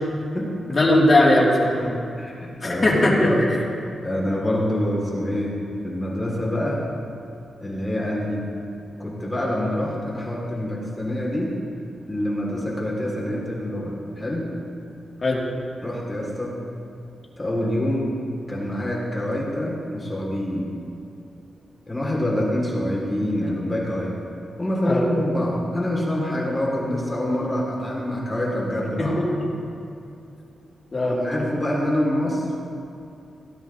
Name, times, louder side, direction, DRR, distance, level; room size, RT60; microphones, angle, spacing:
voice 1, 0.7-1.8 2.6-3.3 15.2-15.4 24.8-25.1 29.0-29.5 30.9-31.2, left 1 dB, 30° left, -4 dB, 2.1 m, -19 dB
voice 2, 1.8-3.5 4.0-6.9 7.6-8.6 9.0-11.6 12.0-14.5 15.8-16.6 17.4-18.1 18.5-20.7 21.9-24.1 24.6-29.3 31.1-32.5, left 1 dB, 15° left, -4 dB, 1.8 m, -26 dB
17.5 x 12.0 x 2.7 m, 2.6 s
wide cardioid pair, 165°, 0 cm